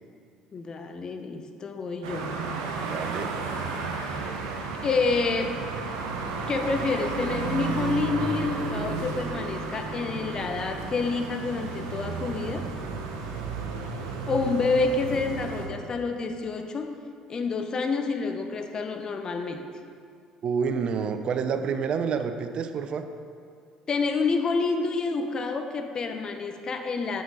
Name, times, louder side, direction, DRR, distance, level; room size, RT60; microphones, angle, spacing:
voice 1, 0.5-2.3 4.0-4.2 4.8-5.6 6.5-12.7 14.3-17.0 17.3-19.7 23.9-27.2, left 4 dB, 40° left, 6 dB, 0.7 m, -28 dB
sound 1, 2.0-15.7, right 4 dB, 85° right, 0.8 m, -33 dB
voice 2, 2.8-3.4 20.4-23.1, right 6 dB, 50° right, 8 dB, 0.5 m, -28 dB
7.0 x 6.1 x 4.1 m, 2.2 s
hypercardioid pair, 70°, 2 cm